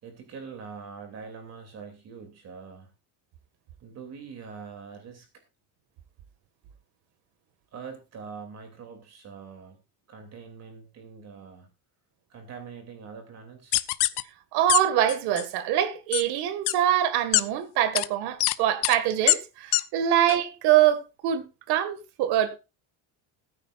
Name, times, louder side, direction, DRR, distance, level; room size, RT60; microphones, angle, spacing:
voice 1, 0.0-2.9 3.8-5.3 7.7-9.8 10.1-11.7 12.3-13.8, right 5 dB, 40° right, 2.8 m, -43 dB
sound 1, 13.7-14.2 14.7-14.8 15.1-15.4 16.1-16.2 16.7-16.8 17.3-17.4 17.9-18.1 18.4-18.5 18.8-19.0 19.3-19.4 19.7-19.8 20.3-20.4, left 19 dB, 75° left, 0.9 m, -22 dB
voice 2, 14.5-22.6, right 11 dB, 75° right, 2.0 m, -24 dB
20.0 x 9.7 x 2.5 m
cardioid pair, 165°, 40 cm